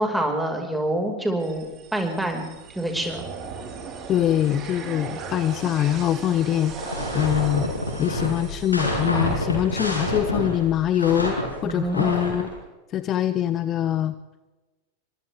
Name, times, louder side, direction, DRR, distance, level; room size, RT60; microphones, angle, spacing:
voice 1, 0.0-2.5 2.8-3.2 11.6-12.1, right 1 dB, 5° right, 2 dB, 5.4 m, -26 dB
sound 1, 1.4-9.3, right 5 dB, 30° right, 4.3 m, -38 dB
voice 2, 4.1-7.7 8.0-11.4 11.6-12.5 12.9-14.1, left 11 dB, 30° left, 14 dB, 0.8 m, -23 dB
sound 2, 6.6-12.5, left 1 dB, 85° left, 7.1 m, -27 dB
30.0 x 25.0 x 3.6 m, 1.2 s
figure-of-eight pair, 90°, 0 cm